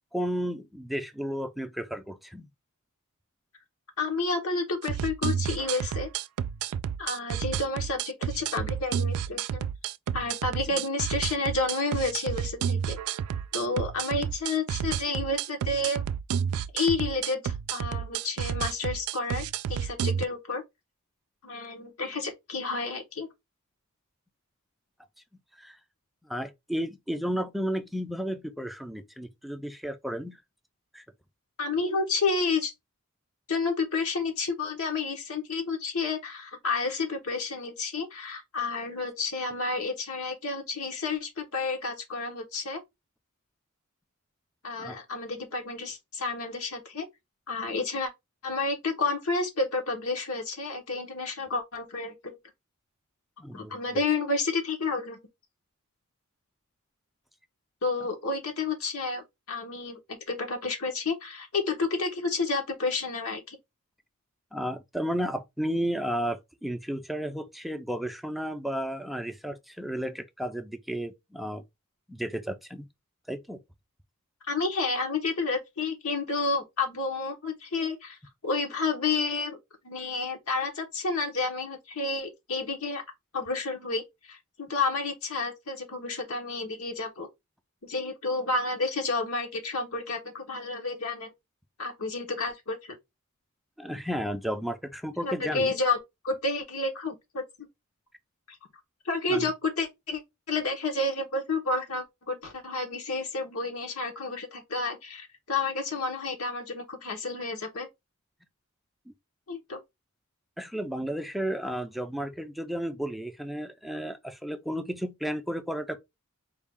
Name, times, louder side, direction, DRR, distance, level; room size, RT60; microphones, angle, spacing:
voice 1, 0.1-2.5 10.7-10.8 25.6-25.8 26.2-30.4 30.9-31.0 44.8-44.9 53.4-53.7 64.5-71.6 72.1-72.9 73.3-73.6 93.8-95.8 99.3-99.5 109.1-109.2 110.6-116.0, equal, ahead, 0.4 m, -33 dB
voice 2, 4.0-6.1 7.0-9.7 10.1-13.0 13.5-16.0 16.7-20.6 21.4-23.3 31.6-32.7 33.5-42.8 44.6-47.1 47.5-48.1 48.4-52.4 53.5-55.2 57.8-60.0 60.3-63.6 74.5-79.6 79.8-83.0 83.3-87.3 87.8-91.3 91.8-93.0 95.2-96.0 96.2-97.7 98.5-98.6 99.0-100.2 100.5-107.9 109.5-109.8, left 3 dB, 80° left, 1.1 m, -30 dB
sound 1, 4.8-20.2, right 8 dB, 80° right, 0.3 m, -31 dB
4.6 x 2.3 x 3.5 m
head